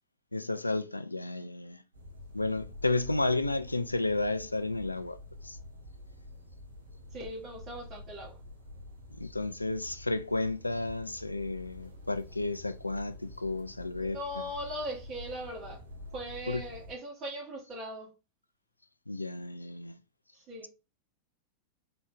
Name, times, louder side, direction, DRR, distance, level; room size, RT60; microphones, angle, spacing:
voice 1, 0.3-1.8 2.3-5.2 5.4-5.6 9.2-14.2 16.5-16.6 19.1-19.9, left 2 dB, 85° left, 0.3 m, -32 dB
sound 1, 1.9-16.9, left 2 dB, 75° right, 1.0 m, -48 dB
voice 2, 7.1-8.4 14.0-15.8 16.1-18.1 20.3-20.7, equal, 30° right, 2.3 m, -39 dB
3.8 x 3.4 x 3.8 m
figure-of-eight pair, 90°, 0 cm